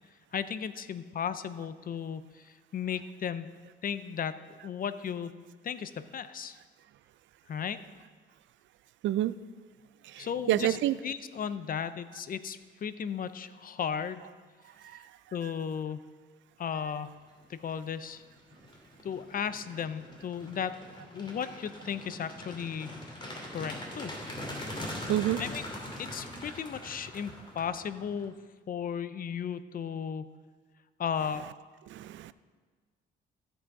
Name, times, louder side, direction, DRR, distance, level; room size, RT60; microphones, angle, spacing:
voice 1, 0.3-3.5 3.8-5.3 5.6-6.6 7.5-7.8 10.2-10.8 11.0-14.2 15.3-16.1 16.6-17.2 17.5-18.2 19.0-20.8 21.1-22.9 23.5-24.1 25.4-25.6 26.0-28.4 28.7-30.3 31.0-31.4, left 7 dB, 45° left, 14 dB, 0.5 m, -35 dB
voice 2, 10.1-11.0 15.4-15.5 25.1-25.4 31.2-31.4 31.9-32.3, right 13 dB, 70° right, 16 dB, 0.4 m, -29 dB
sound 1, 17.4-17.7 18.2-28.3, left 1 dB, 25° left, 2.8 m, -42 dB
14.5 x 6.1 x 4.7 m, 1.5 s
cardioid pair, 90°, 20 cm